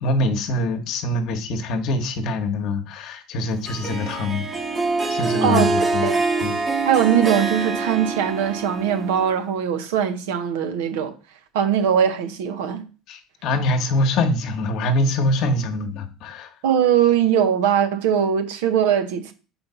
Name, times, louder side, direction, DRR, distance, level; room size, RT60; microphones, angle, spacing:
voice 1, 0.0-4.5 5.1-6.1 6.4-6.6 13.1-16.5, left 1 dB, 60° left, 1.0 m, -24 dB
Harp, 3.7-9.4, right 3 dB, 20° right, 0.9 m, -25 dB
voice 2, 6.9-11.1 11.5-12.8 16.6-19.3, right 9 dB, 80° right, 0.7 m, -21 dB
4.3 x 3.9 x 5.5 m
supercardioid pair, 95°, 0 cm